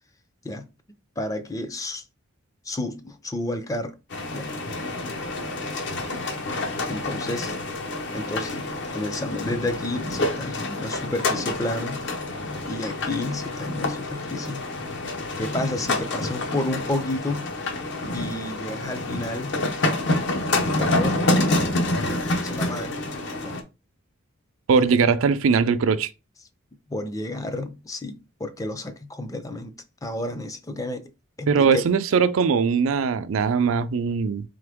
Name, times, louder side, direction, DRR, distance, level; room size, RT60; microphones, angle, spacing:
voice 1, 1.2-2.0 2.7-3.9 4.3-4.5 6.9-7.5 8.1-8.5 8.9-12.0 12.7-14.6 15.4-17.5 18.1-19.6 20.6-21.2 22.4-22.9 23.4-23.6 24.9-25.0 26.9-29.7 30.0-31.1 31.4-31.9, left 1 dB, 15° left, 0.4 m, -31 dB
sound 1, 4.1-23.6, left 2 dB, 60° left, 0.8 m, -27 dB
voice 2, 24.7-26.1 31.5-34.4, right 5 dB, 85° right, 0.4 m, -20 dB
3.8 x 3.4 x 3.4 m
head